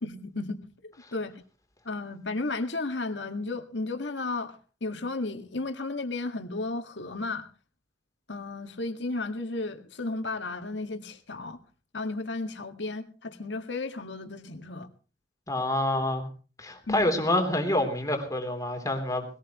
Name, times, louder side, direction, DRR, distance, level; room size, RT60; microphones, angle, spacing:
voice 1, 0.0-1.4 1.9-7.5 8.3-11.6 11.9-14.9 16.9-17.1, left 3 dB, 70° left, 1.9 m, -34 dB
voice 2, 15.5-16.3 16.6-19.2, left 1 dB, 20° left, 3.3 m, -27 dB
20.5 x 18.0 x 3.1 m
head